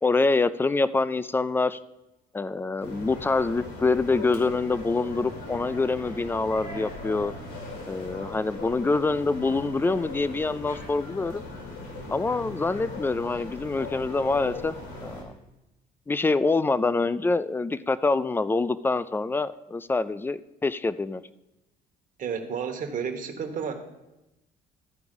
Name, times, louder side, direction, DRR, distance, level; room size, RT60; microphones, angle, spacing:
voice 1, 0.0-1.8 2.3-7.3 7.8-11.4 12.1-14.7 15.0-15.3 16.1-21.2, left 3 dB, 15° left, 16 dB, 0.3 m, -25 dB
sound 1, 2.8-15.2, left 2 dB, 85° left, 3.1 m, -39 dB
voice 2, 22.2-23.8, right 6 dB, 50° right, 6 dB, 1.2 m, -31 dB
13.0 x 4.7 x 5.3 m, 0.97 s
cardioid pair, 110°, 17 cm